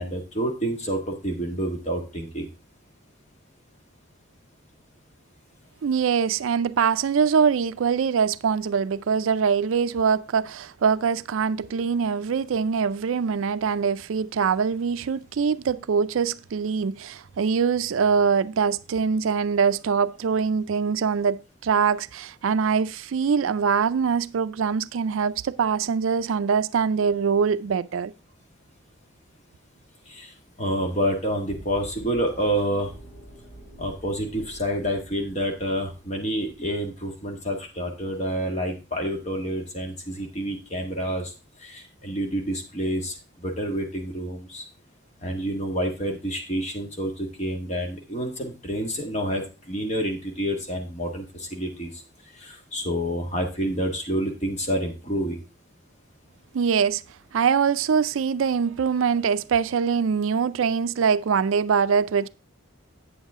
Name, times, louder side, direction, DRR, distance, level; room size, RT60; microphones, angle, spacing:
voice 1, 0.0-2.5 30.1-32.9 33.8-41.3 41.6-44.6 45.2-52.0 52.4-55.4, equal, 35° left, 1.6 m, -28 dB
voice 2, 5.8-28.1 56.5-57.0 57.3-62.3, right 6 dB, 80° right, 0.4 m, -23 dB
sound 1, 31.5-37.4, right 1 dB, 50° left, 2.5 m, -47 dB
8.6 x 7.4 x 3.6 m
head